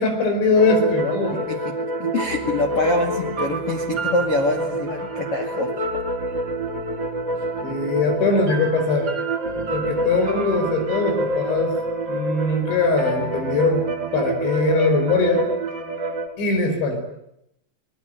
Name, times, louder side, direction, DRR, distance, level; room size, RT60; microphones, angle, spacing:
voice 1, 0.0-1.5 7.6-9.1 9.5-11.8 12.1-13.9 14.1-15.5 16.4-17.0, left 3 dB, 75° left, 5 dB, 7.2 m, -21 dB
sound 1, 0.5-16.3, right 2 dB, 25° right, 3.3 m, -27 dB
voice 2, 1.3-1.7 2.0-5.7, left 2 dB, 45° left, 3 dB, 2.0 m, -25 dB
26.5 x 20.0 x 9.2 m, 0.81 s
omnidirectional pair, 5.3 m